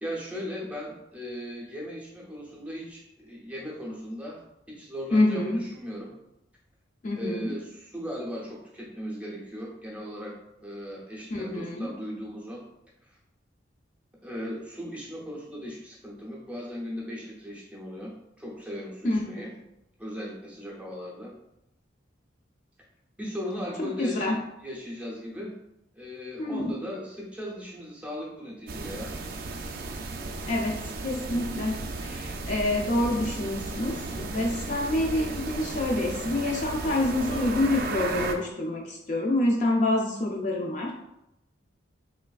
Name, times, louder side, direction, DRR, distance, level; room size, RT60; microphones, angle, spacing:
voice 1, 0.0-4.4 4.7-6.2 7.1-10.3 10.6-12.6 13.0-13.1 14.2-19.5 20.0-21.3 23.2-25.6 25.9-29.1, equal, 5° right, -4 dB, 0.6 m, -38 dB
voice 2, 5.1-5.6 7.0-7.5 11.3-11.9 19.0-19.5 23.8-24.4 26.4-26.7 30.5-40.9, left 1 dB, 40° left, -1 dB, 0.4 m, -27 dB
sound 1, 28.7-38.3, right 3 dB, 50° right, 0.3 m, -35 dB
3.3 x 3.0 x 2.3 m, 0.87 s
head